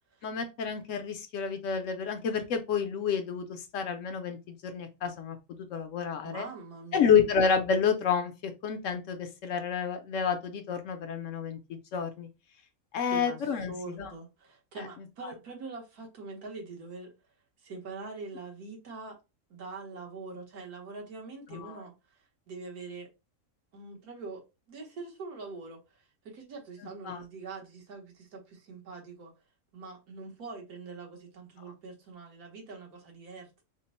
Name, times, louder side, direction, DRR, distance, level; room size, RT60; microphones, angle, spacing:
voice 1, 0.2-4.4 4.6-5.4 5.7-6.5 6.9-12.3 12.9-14.1 14.8-14.9 15.2-15.3 21.5-21.8 27.1-27.2, left 6 dB, 65° left, 0.9 m, -29 dB
voice 2, 6.2-7.3 13.1-13.4 13.7-17.1 17.6-19.2 19.5-21.9 22.5-23.1 23.7-24.4 24.7-29.3 29.7-33.6, right 4 dB, 85° right, 1.6 m, -43 dB
3.6 x 2.0 x 4.1 m
omnidirectional pair, 1.5 m